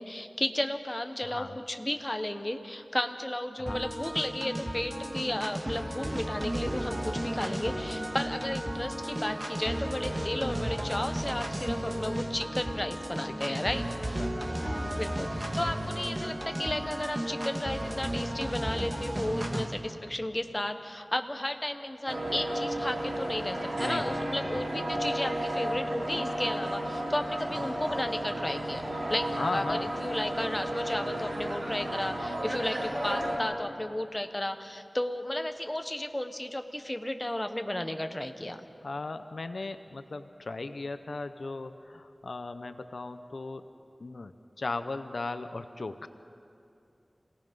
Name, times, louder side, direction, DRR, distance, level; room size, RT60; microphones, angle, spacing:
voice 1, 0.0-14.2 14.9-38.6, left 1 dB, 25° left, 7 dB, 1.1 m, -33 dB
voice 2, 1.2-1.6 3.6-3.8 13.2-13.7 14.2-15.2 19.5-19.7 23.8-24.2 24.4-24.6 27.5-27.6 29.4-29.9 38.8-43.7 44.0-46.1, left 3 dB, 85° left, 10 dB, 0.6 m, -37 dB
sound 1, 3.7-19.7, right 1 dB, 30° right, 2.1 m, -34 dB
sound 2, 22.1-33.4, right 1 dB, 65° right, 3.4 m, -33 dB
27.5 x 17.5 x 5.3 m, 2.6 s
wide cardioid pair, 60°, 0 cm